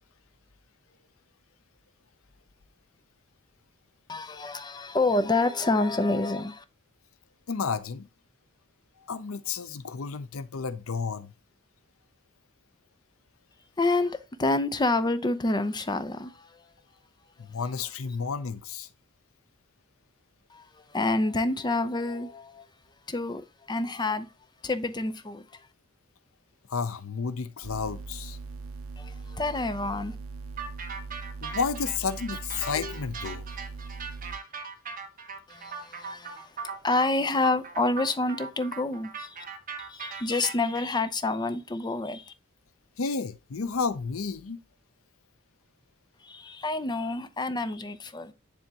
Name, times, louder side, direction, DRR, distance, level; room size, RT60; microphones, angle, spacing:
voice 1, 4.1-6.6 13.8-16.7 17.4-17.5 20.5-22.7 23.1-24.3 24.6-25.7 29.0-30.2 35.5-39.4 39.8-42.3 46.2-48.3, left 2 dB, 20° left, 0.6 m, -28 dB
voice 2, 7.5-8.1 9.1-11.3 17.4-18.9 26.7-28.4 31.4-33.5 43.0-44.6, left 5 dB, 85° left, 0.6 m, -31 dB
sound 1, 27.6-34.4, right 4 dB, 75° right, 0.4 m, -40 dB
sound 2, 30.6-40.8, right 5 dB, 40° right, 1.1 m, -39 dB
10.0 x 3.5 x 2.8 m
head